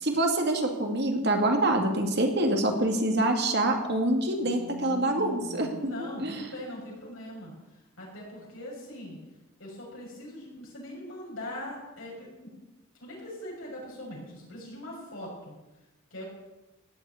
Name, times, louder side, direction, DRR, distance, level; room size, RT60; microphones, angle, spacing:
voice 1, 0.0-5.7 6.2-6.3, right 1 dB, 55° right, 3 dB, 2.1 m, -25 dB
voice 2, 4.4-9.2 9.6-12.5 13.0-15.5 16.1-16.2, left 1 dB, 75° left, -3 dB, 6.6 m, -41 dB
16.5 x 6.2 x 9.3 m, 1.0 s
head